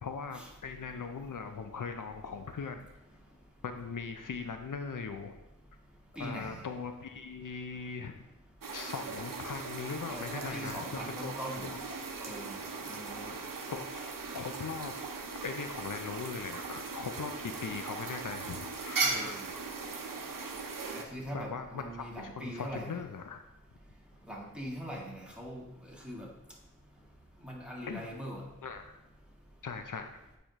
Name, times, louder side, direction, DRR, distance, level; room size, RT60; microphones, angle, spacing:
voice 1, 0.0-2.9 3.6-5.4 6.2-8.2 8.7-10.9 11.2-11.3 11.6-11.8 13.7-14.9 15.4-19.4 21.3-23.4 27.9-28.1 28.6-28.9 29.6-30.1, left 5 dB, 75° left, 7 dB, 0.6 m, -40 dB
voice 2, 6.2-6.6 10.1-11.7 12.2-12.6 12.9-13.3 19.0-19.5 20.9-23.0 24.3-26.3 27.4-28.4, equal, 5° right, -3 dB, 1.8 m, -41 dB
sound 1, 8.6-21.0, right 4 dB, 85° right, 0.7 m, -38 dB
8.5 x 5.1 x 3.0 m, 0.91 s
wide cardioid pair, 50°, 32 cm